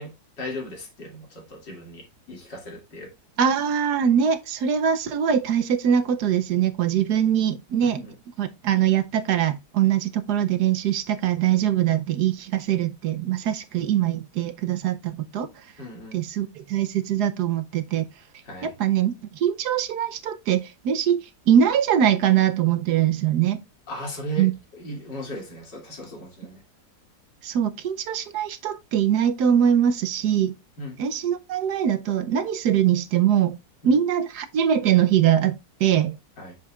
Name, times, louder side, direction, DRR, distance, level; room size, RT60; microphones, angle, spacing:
voice 1, 0.0-3.1 7.8-8.1 15.8-16.2 18.4-18.8 23.9-26.6 30.8-31.0 33.8-33.9 36.4-36.5, equal, 80° left, 3.3 m, -37 dB
voice 2, 3.4-8.0 8.4-15.5 16.1-18.1 18.6-23.6 24.4-24.5 27.4-30.5 31.0-33.6 33.8-36.2, right 9 dB, 70° right, 1.2 m, -22 dB
8.4 x 6.5 x 2.4 m
omnidirectional pair, 1.8 m